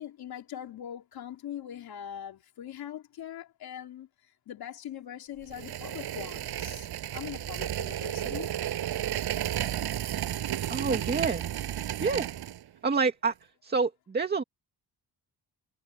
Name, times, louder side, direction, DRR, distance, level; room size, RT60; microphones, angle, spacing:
voice 1, 0.0-4.1 4.5-6.9 7.1-8.5, left 10 dB, 65° left, 3.5 m, -41 dB
sound 1, 5.5-12.6, right 11 dB, 75° right, 6.4 m, -33 dB
voice 2, 10.7-11.4 12.0-12.3 12.8-13.3 13.6-14.4, right 4 dB, 25° right, 2.2 m, -27 dB
cardioid pair, 155°, 39 cm